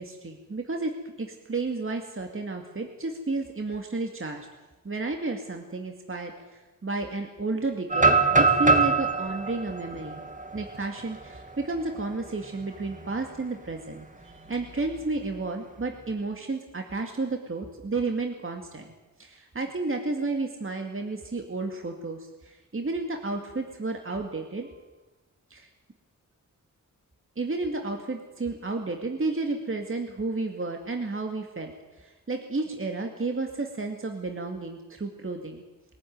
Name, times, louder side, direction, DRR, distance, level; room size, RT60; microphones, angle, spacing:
voice 1, 0.0-4.5 4.8-10.2 10.5-18.9 19.2-24.8 25.5-25.7 27.4-35.6, right 3 dB, 40° right, 3 dB, 2.2 m, -32 dB
sound 1, 7.9-11.8 12.2-12.3 12.8-13.1 14.5-15.3, right 3 dB, 25° right, 2.4 m, -24 dB
22.5 x 14.0 x 9.5 m, 1.1 s
wide cardioid pair, 80°, 33 cm